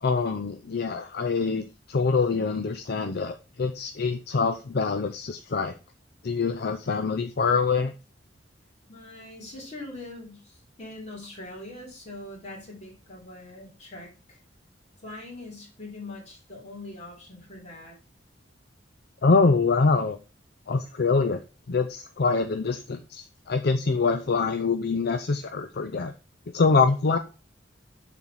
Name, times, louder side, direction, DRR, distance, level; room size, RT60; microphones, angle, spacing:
voice 1, 0.0-5.7 6.2-7.9 19.2-20.2 20.7-21.4 21.7-26.1 26.5-27.2, left 4 dB, 60° left, 8 dB, 0.5 m, -25 dB
voice 2, 8.9-14.4 15.0-18.0, left 2 dB, 40° left, -2 dB, 2.9 m, -42 dB
7.0 x 4.2 x 4.8 m, 0.32 s
head